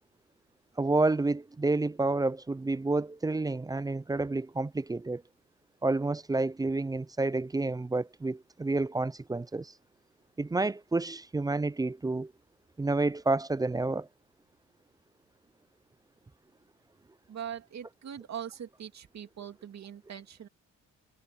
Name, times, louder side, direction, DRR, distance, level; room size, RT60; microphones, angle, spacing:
voice 1, 0.8-5.2 5.8-9.7 10.4-12.3 12.8-14.1, right 2 dB, 15° right, 0.4 m, -29 dB
voice 2, 17.3-20.5, right 9 dB, 60° right, 2.6 m, -41 dB
cardioid pair, 95°, 31 cm